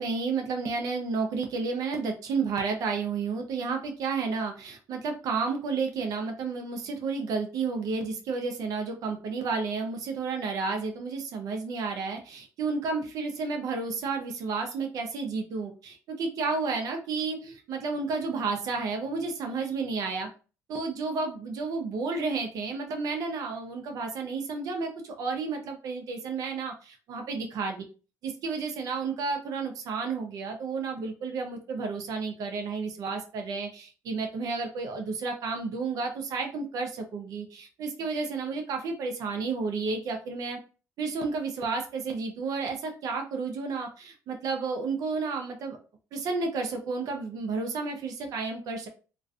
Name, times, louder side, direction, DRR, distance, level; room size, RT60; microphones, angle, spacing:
voice 1, 0.0-20.3 20.7-27.8 28.2-40.6 41.0-45.8 46.1-48.9, right 4 dB, 70° right, 4 dB, 0.5 m, -31 dB
2.4 x 2.2 x 2.4 m, 0.36 s
supercardioid pair, 80°, 6 cm